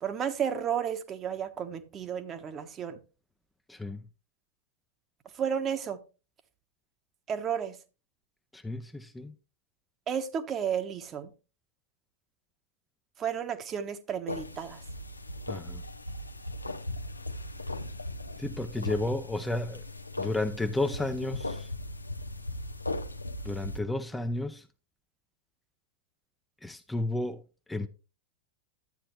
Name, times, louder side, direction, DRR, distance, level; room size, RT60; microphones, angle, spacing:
voice 1, 0.0-3.0 5.4-6.0 7.3-7.8 10.1-11.3 13.2-14.8, right 8 dB, 25° right, 1.2 m, -32 dB
voice 2, 3.7-4.0 8.5-9.3 15.5-15.8 18.4-19.8 20.2-21.7 23.4-24.6 26.6-27.4 27.7-27.9, left 2 dB, 5° left, 0.6 m, -32 dB
sound 1, 14.3-23.8, left 1 dB, 85° left, 0.7 m, -38 dB
12.0 x 8.7 x 3.1 m
figure-of-eight pair, 90°, 0 cm